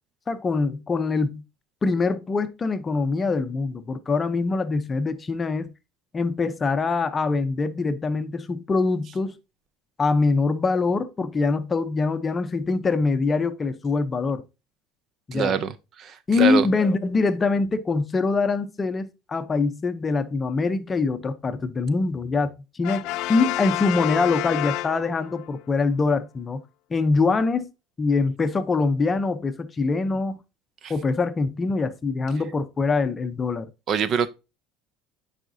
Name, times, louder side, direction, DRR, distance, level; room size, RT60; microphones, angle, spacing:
voice 1, 0.3-1.4 1.8-5.7 6.1-9.3 10.0-14.4 15.3-15.6 16.3-26.6 26.9-27.7 28.0-30.4 30.9-33.7, left 4 dB, 20° left, 0.7 m, -24 dB
voice 2, 15.3-16.7 30.8-30.9 33.9-34.3, right 7 dB, 45° right, 0.5 m, -25 dB
Brass instrument, 22.8-25.5, left 17 dB, 65° left, 0.3 m, -29 dB
8.9 x 4.9 x 2.7 m
supercardioid pair, 125°, 0 cm